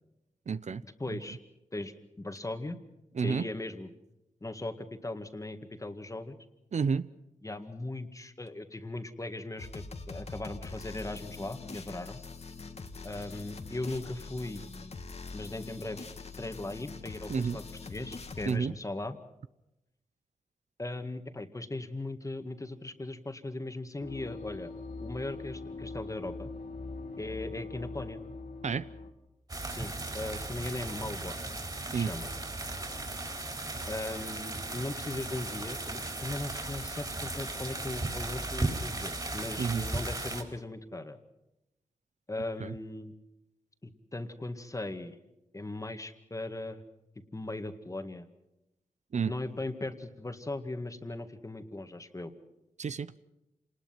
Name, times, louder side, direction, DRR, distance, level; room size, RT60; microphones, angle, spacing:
voice 1, 0.5-1.2 3.1-3.5 6.7-7.1 17.3-17.6 18.5-18.7 28.6-28.9 31.9-32.1 39.6-39.9 42.6-42.7 49.1-49.3 52.8-53.1, right 5 dB, 60° right, 15 dB, 0.7 m, -30 dB
voice 2, 1.0-1.4 1.7-2.8 3.2-3.9 4.4-6.4 7.4-12.2 13.0-14.6 15.3-16.0 16.4-19.2 20.8-24.7 25.0-26.5 27.2-28.2 29.7-31.3 31.9-32.3 33.9-41.2 42.3-43.1 43.8-45.2 45.5-46.8 47.3-48.3 49.3-52.3, left 2 dB, 25° left, 8 dB, 1.9 m, -38 dB
sound 1, 9.6-18.6, left 4 dB, 50° left, 1.7 m, -44 dB
sound 2, 24.0-29.1, left 3 dB, 80° left, 2.5 m, -42 dB
sound 3, 29.5-40.4, right 2 dB, 30° right, 4.3 m, -36 dB
27.5 x 20.0 x 5.9 m, 0.92 s
cardioid pair, 75°, 14 cm